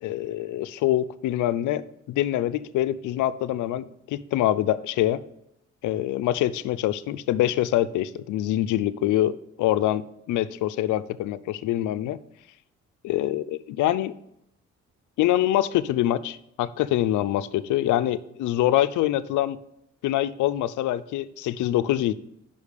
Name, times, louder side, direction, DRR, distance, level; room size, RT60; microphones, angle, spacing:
voice 1, 0.0-1.8 2.1-5.2 5.8-10.0 10.3-12.2 13.0-14.1 15.2-19.6 20.0-22.1, left 13 dB, 80° left, 0.5 m, -25 dB
5.5 x 5.1 x 6.6 m
cardioid pair, 90°, 30 cm